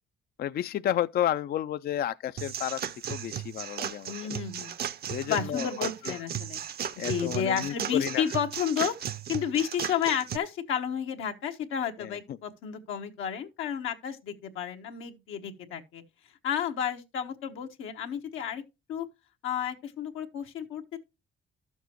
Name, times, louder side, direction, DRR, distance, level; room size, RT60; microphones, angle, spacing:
voice 1, 0.4-2.8 3.1-4.1 5.1-6.1 7.0-8.3 12.0-12.4, left 11 dB, 50° left, 0.4 m, -31 dB
sound 1, 2.4-10.4, right 9 dB, 50° right, 0.6 m, -36 dB
voice 2, 4.1-4.7 5.3-6.6 7.1-9.0 9.3-16.0 16.4-18.6 18.9-19.1 19.4-21.0, left 8 dB, 85° left, 1.3 m, -31 dB
12.5 x 7.1 x 3.0 m
cardioid pair, 90°, 20 cm